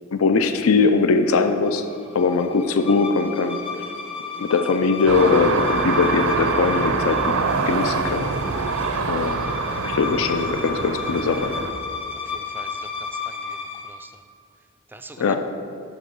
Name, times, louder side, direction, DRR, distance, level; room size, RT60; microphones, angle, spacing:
voice 1, 0.1-1.9 2.1-3.6 4.4-7.4 7.7-8.3 9.1-9.4 9.8-11.5 15.2-15.4, left 4 dB, 75° left, 8 dB, 0.5 m, -20 dB
sound 1, 1.3-14.0, left 5 dB, 25° left, 0.8 m, -33 dB
sound 2, 5.1-11.7, right 4 dB, 80° right, 0.6 m, -25 dB
voice 2, 12.2-14.2 14.9-15.4, right 2 dB, 10° right, 8 dB, 0.3 m, -44 dB
11.0 x 3.7 x 5.4 m, 2.5 s
head